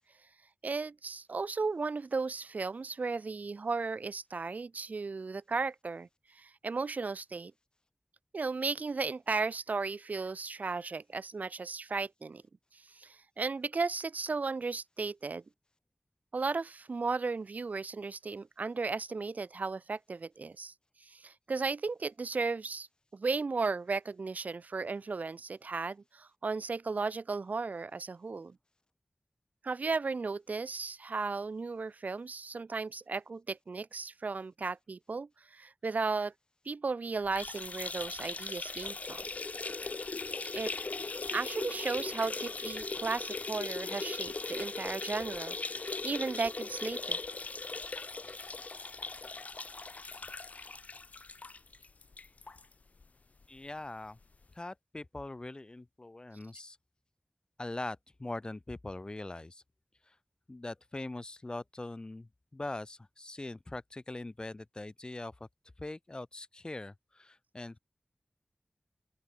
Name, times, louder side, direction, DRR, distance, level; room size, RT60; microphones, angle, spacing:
voice 1, 0.6-6.1 6.4-7.5 8.3-12.4 12.9-15.4 16.3-20.7 21.1-22.9 23.1-28.5 29.6-36.3 36.7-39.2 40.5-40.7 41.3-47.2, right 4 dB, 70° right, 0.8 m, -35 dB
sound 1, 37.2-52.6 53.0-53.1 53.4-53.5 54.5-54.6, left 3 dB, 60° left, 0.8 m, -39 dB
voice 2, 53.5-54.2 54.5-56.8 57.6-59.6 60.1-60.2 60.5-65.5 65.8-67.8, left 2 dB, 30° left, 0.6 m, -42 dB
open air
wide cardioid pair, 80°, 3 cm